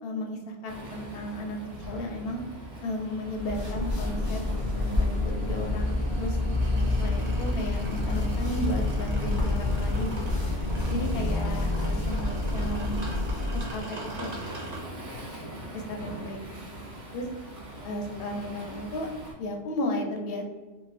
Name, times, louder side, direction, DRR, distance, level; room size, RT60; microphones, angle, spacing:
voice 1, 0.0-1.6 1.9-2.4 2.8-4.4 4.7-6.4 6.7-10.3 10.9-13.0 13.5-14.5 15.7-16.6 17.1-17.3 17.8-19.1 19.4-20.4, left 1 dB, 65° left, 2 dB, 0.7 m, -34 dB
Waves surf, 0.7-19.3, right 1 dB, 70° right, 1.1 m, -43 dB
sound 1, 3.3-13.8, left 2 dB, 35° left, 0.3 m, -28 dB
sound 2, 4.2-14.8, equal, 50° right, 0.5 m, -37 dB
2.6 x 2.5 x 3.2 m, 1.3 s
omnidirectional pair, 1.2 m